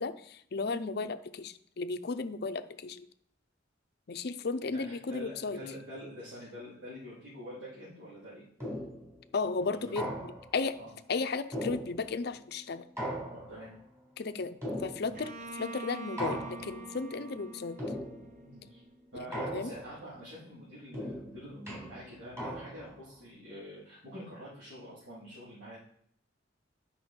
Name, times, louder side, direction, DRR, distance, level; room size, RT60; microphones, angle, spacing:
voice 1, 0.0-3.1 4.1-5.6 9.3-10.8 11.1-12.9 14.2-17.8 19.1-19.3 19.5-19.7, left 4 dB, 55° left, 11 dB, 0.5 m, -35 dB
voice 2, 4.7-8.4 9.7-9.9 10.8-10.9 13.3-13.7 15.1-15.2 18.4-18.8 19.1-25.8, equal, 70° right, -10 dB, 3.4 m, -46 dB
sound 1, 8.6-9.1 10.0-10.6 11.5-12.3 13.0-13.8 14.6-15.3 16.2-16.9 17.8-18.4 19.3-20.0 20.9-23.0, equal, 15° right, 3.7 m, -38 dB
Bowed string instrument, 15.2-18.9, right 2 dB, 45° right, 0.9 m, -45 dB
9.9 x 5.6 x 4.4 m, 0.68 s
head